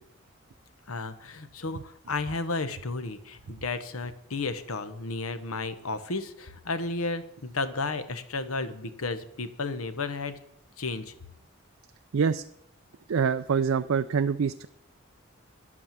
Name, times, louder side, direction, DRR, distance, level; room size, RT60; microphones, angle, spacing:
voice 1, 0.9-10.4 10.8-11.1, left 3 dB, 85° left, 11 dB, 1.1 m, -33 dB
voice 2, 13.1-14.7, right 6 dB, 75° right, 11 dB, 0.4 m, -25 dB
11.0 x 8.6 x 7.4 m, 0.74 s
head